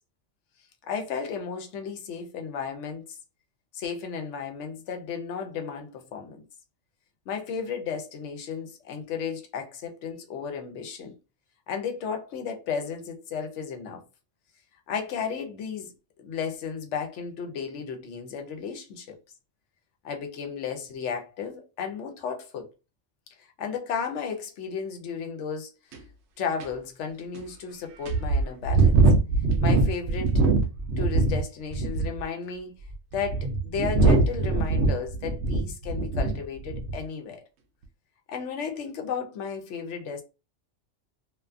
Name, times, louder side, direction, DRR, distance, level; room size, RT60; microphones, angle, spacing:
voice 1, 0.9-3.2 3.7-6.4 7.3-11.1 11.7-14.0 14.9-15.9 16.2-19.2 20.0-22.7 23.4-25.7 26.4-29.0 29.6-30.4 31.0-32.7 33.1-37.4 38.3-40.2, left 6 dB, 70° left, 0.9 m, -34 dB
sound 1, 25.9-26.0 26.6-26.7 27.3-27.4 28.1-31.4 31.7-32.2 32.9-36.4 36.7-37.0, right 3 dB, 70° right, 0.8 m, -22 dB
2.5 x 2.3 x 2.4 m
omnidirectional pair, 1.3 m